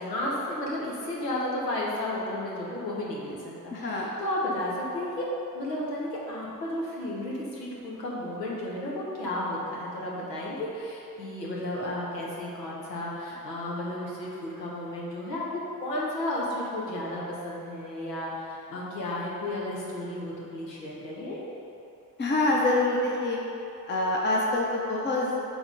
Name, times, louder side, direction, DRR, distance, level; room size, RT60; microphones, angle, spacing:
voice 1, 0.0-5.3 5.5-15.4 15.8-21.4, left 1 dB, 80° left, -4 dB, 1.1 m, -33 dB
voice 2, 3.7-4.1 22.2-23.4 23.9-25.4, left 2 dB, 20° left, -3 dB, 0.8 m, -25 dB
6.3 x 3.8 x 4.8 m, 2.8 s
figure-of-eight pair, 45°, 49 cm